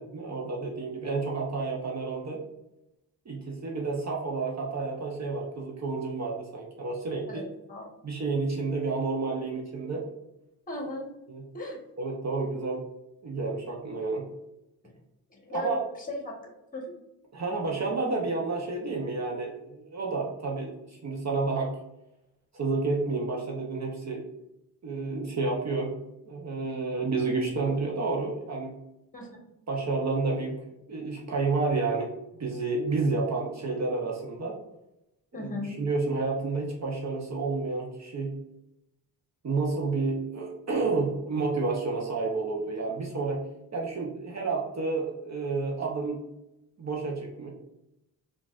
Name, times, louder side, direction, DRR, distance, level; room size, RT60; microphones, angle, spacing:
voice 1, 0.1-2.4 3.3-7.5 8.0-10.1 11.3-11.4 12.0-12.8 13.2-14.2 15.5-15.8 17.3-21.8 22.5-24.2 24.8-25.9 26.3-28.7 29.7-30.6 30.9-32.1 32.4-34.6 35.3-38.3 39.4-43.4 43.7-46.2 46.8-47.5, right 3 dB, 40° right, -1 dB, 0.7 m, -30 dB
voice 2, 7.3-7.9 10.7-11.1 11.5-11.8 15.3-16.4 16.7-16.9 29.1-29.4 35.3-35.7, left 1 dB, 20° left, 0 dB, 1.0 m, -36 dB
3.9 x 2.4 x 2.4 m, 0.88 s
cardioid pair, 65°, 40 cm